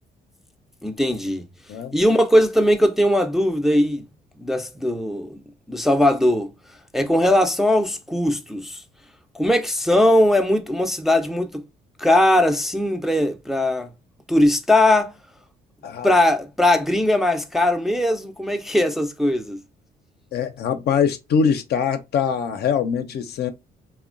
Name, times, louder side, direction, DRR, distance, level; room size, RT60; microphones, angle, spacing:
voice 1, 0.8-1.5 1.9-4.0 4.4-6.5 6.9-8.8 9.3-11.6 12.0-13.9 14.3-15.2 16.0-19.6, left 1 dB, ahead, 0.4 m, -19 dB
voice 2, 20.3-23.5, left 7 dB, 65° left, 0.5 m, -23 dB
2.9 x 2.1 x 2.4 m
cardioid pair, 85°, 18 cm